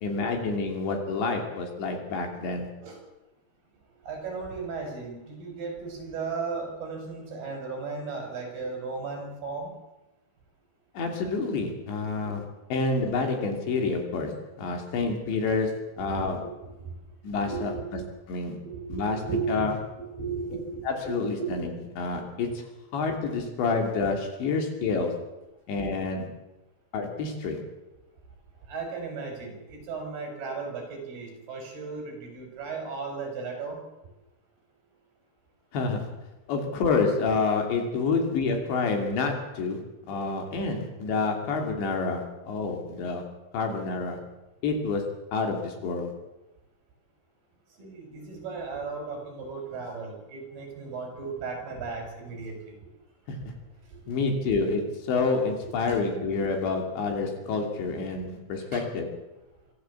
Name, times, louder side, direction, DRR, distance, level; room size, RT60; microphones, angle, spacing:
voice 1, 0.0-2.7 10.9-12.4 12.7-16.5 17.2-17.7 18.3-18.6 18.9-19.7 20.8-25.2 25.7-26.3 26.9-27.7 35.7-36.1 36.5-43.3 43.5-44.2 44.6-46.1 54.1-59.1, left 4 dB, 70° left, 3 dB, 5.1 m, -28 dB
voice 2, 4.0-9.7 16.0-17.2 17.4-18.1 18.6-19.7 20.0-21.2 25.0-25.1 28.6-33.8 47.8-52.8 53.9-54.1 58.7-58.8, right 4 dB, 55° right, 3 dB, 7.1 m, -36 dB
25.0 x 13.5 x 8.3 m, 1.0 s
omnidirectional pair, 5.3 m